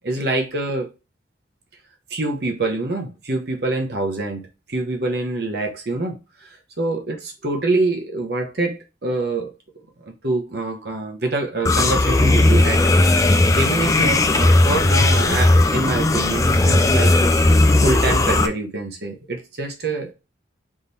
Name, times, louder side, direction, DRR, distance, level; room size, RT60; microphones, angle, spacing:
voice 1, 0.0-0.9 2.1-6.5 6.8-9.5 10.0-17.3 17.8-20.1, right 2 dB, 55° right, 0.9 m, -25 dB
sound 1, 11.6-18.5, left 2 dB, 15° left, 0.3 m, -16 dB
3.7 x 3.2 x 4.0 m
head